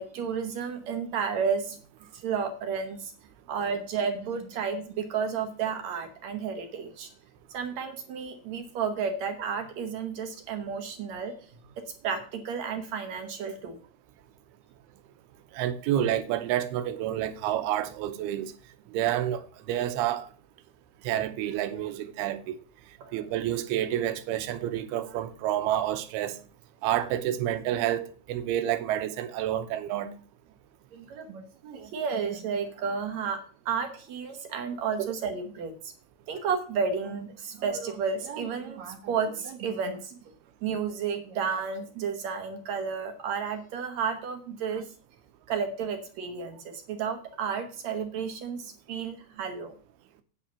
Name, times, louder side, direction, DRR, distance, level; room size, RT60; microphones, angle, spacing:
voice 1, 0.0-1.8 2.1-3.1 3.5-7.1 7.5-11.3 12.0-13.8 23.1-23.3 30.9-33.4 33.7-35.9 36.3-40.2 40.6-44.9 45.5-49.7, right 6 dB, 65° right, 1.8 m, -32 dB
voice 2, 15.5-18.5 18.9-19.4 19.7-20.3 21.0-22.6 23.1-26.3 26.8-28.0 28.3-30.1 35.0-35.1, right 12 dB, 85° right, 2.7 m, -29 dB
9.2 x 5.7 x 7.2 m
omnidirectional pair, 4.4 m